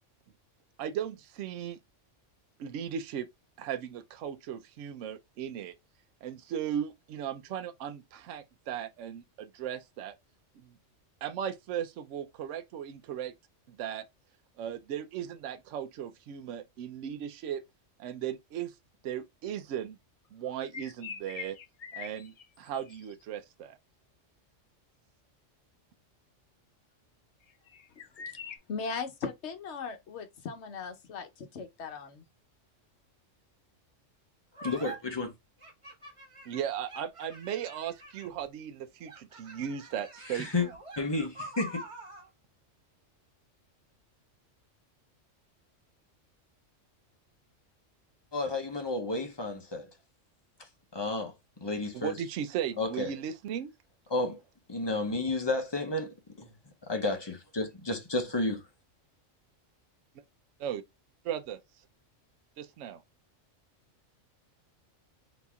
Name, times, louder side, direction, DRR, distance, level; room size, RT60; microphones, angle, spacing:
voice 1, 0.8-1.8 2.6-3.3 3.6-5.8 6.2-10.1 10.6-10.7 11.2-13.3 13.7-14.0 14.6-17.6 18.0-18.7 19.0-20.0 20.3-21.6 21.9-23.8 36.5-40.7 51.9-53.7 60.6-60.8 61.2-61.6 62.6-63.0, right 9 dB, 75° right, 0.9 m, -37 dB
sound 1, 20.5-23.2 27.4-28.6, left 7 dB, 50° left, 0.4 m, -44 dB
voice 2, 28.7-32.2, left 5 dB, 65° left, 1.1 m, -38 dB
sound 2, 34.5-35.0 35.6-38.4 39.0-42.3, right 2 dB, 25° right, 1.5 m, -45 dB
voice 3, 34.6-35.3 40.3-40.7 41.0-41.9 48.3-49.9 50.9-51.3 51.6-52.1 52.8-53.1 54.1-54.4 54.7-56.5 56.8-58.7, left 2 dB, 25° left, 0.8 m, -31 dB
4.1 x 2.8 x 3.5 m
omnidirectional pair, 1.3 m